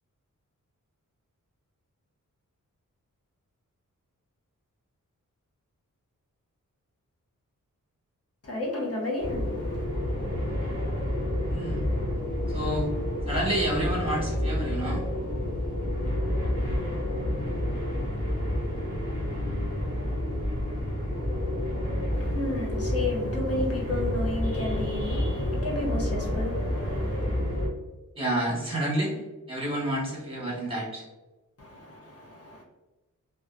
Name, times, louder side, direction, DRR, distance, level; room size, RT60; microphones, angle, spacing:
voice 1, 8.4-9.8 22.1-27.2 31.6-32.6, left 2 dB, 45° left, -3 dB, 0.9 m, -32 dB
sound 1, 9.2-27.7, left 1 dB, 25° left, 1.4 m, -29 dB
voice 2, 11.5-11.8 12.5-12.9 13.2-15.0 28.1-31.1, right 1 dB, 15° right, -5 dB, 1.2 m, -29 dB
2.7 x 2.3 x 2.5 m, 1.1 s
wide cardioid pair, 115°, 32 cm